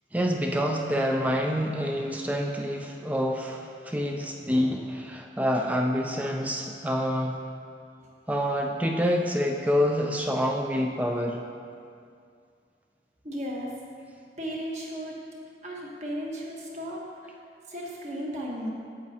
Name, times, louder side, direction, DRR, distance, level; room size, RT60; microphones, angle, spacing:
voice 1, 0.1-7.4 8.3-11.4, equal, 10° right, 1 dB, 0.4 m, -27 dB
voice 2, 13.2-13.7 14.4-15.2 15.6-17.3 17.7-18.7, equal, 40° right, -3 dB, 1.2 m, -35 dB
8.7 x 7.3 x 2.8 m, 2.3 s
head